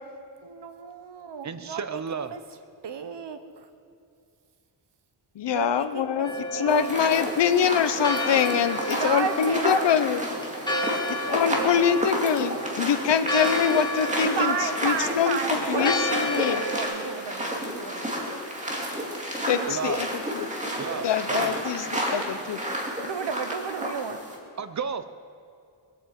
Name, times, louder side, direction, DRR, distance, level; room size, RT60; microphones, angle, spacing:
voice 1, 0.4-2.0 2.3-2.4 2.8-3.4 5.5-6.3 6.6-6.9 8.9-10.0 10.7-11.8 14.4-18.3 19.5-19.9 23.0-24.2, right 6 dB, 70° right, 9 dB, 1.1 m, -33 dB
voice 2, 1.4-2.3 19.7-20.2 20.8-21.6 21.9-22.0 24.6-25.0, right 6 dB, 40° right, 11 dB, 0.7 m, -33 dB
voice 3, 5.4-10.3 11.1-16.6 19.5-20.1 20.3-20.5 21.0-22.6 23.0-23.1, left 8 dB, 75° left, 11 dB, 0.8 m, -24 dB
Church bell, 6.2-16.8, equal, 10° left, 1.9 m, -32 dB
sound 1, 6.7-24.4, equal, 15° right, 2.2 m, -31 dB
22.0 x 8.6 x 7.7 m, 2.4 s
wide cardioid pair, 175°, 43 cm